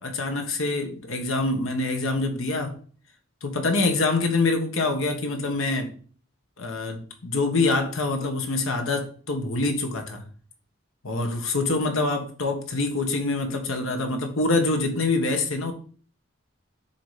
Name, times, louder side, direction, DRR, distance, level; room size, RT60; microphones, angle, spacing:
voice 1, 0.0-2.7 3.4-5.9 6.6-10.2 11.0-15.7, left 3 dB, 75° left, 5 dB, 1.2 m, -25 dB
7.0 x 2.9 x 4.9 m, 0.44 s
head